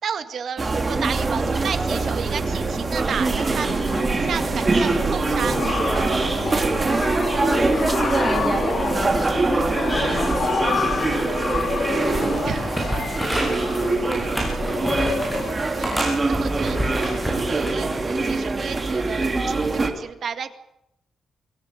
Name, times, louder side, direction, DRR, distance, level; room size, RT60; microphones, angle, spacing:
voice 1, 0.0-3.7 4.1-6.1 12.4-12.7 15.8-17.1 17.5-20.5, right 7 dB, 55° right, 8 dB, 2.1 m, -32 dB
sound 1, 0.6-19.9, right 3 dB, 25° right, 3.0 m, -23 dB
sound 2, 1.6-1.9 2.3-2.5 2.8-17.7, left 6 dB, 55° left, 2.3 m, -30 dB
voice 2, 6.5-12.8 13.1-14.9 15.9-16.0, left 1 dB, 15° left, 5 dB, 5.2 m, -33 dB
sound 3, 12.1-13.7 14.1-15.5 15.8-17.8 18.3-18.5, right 1 dB, 5° right, 7.5 m, -28 dB
24.5 x 17.0 x 9.6 m, 0.83 s
wide cardioid pair, 155°, 0 cm